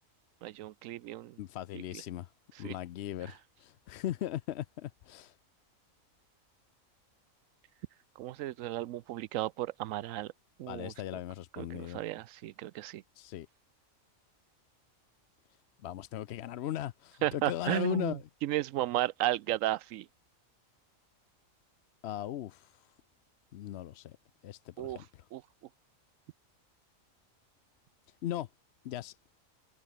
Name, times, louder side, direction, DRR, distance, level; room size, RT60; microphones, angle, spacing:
voice 1, 0.4-1.4 2.6-2.7 8.2-10.3 10.6-10.9 11.6-13.0 17.2-20.1 24.8-25.0 25.3-25.4, right 14 dB, 75° right, 0.9 m, -34 dB
voice 2, 1.4-2.3 2.6-5.4 10.7-12.0 13.1-13.5 15.8-18.2 22.0-22.9 23.5-24.2 24.4-25.2 28.2-28.5 28.8-29.2, left 12 dB, 65° left, 0.7 m, -38 dB
omnidirectional pair, 1.4 m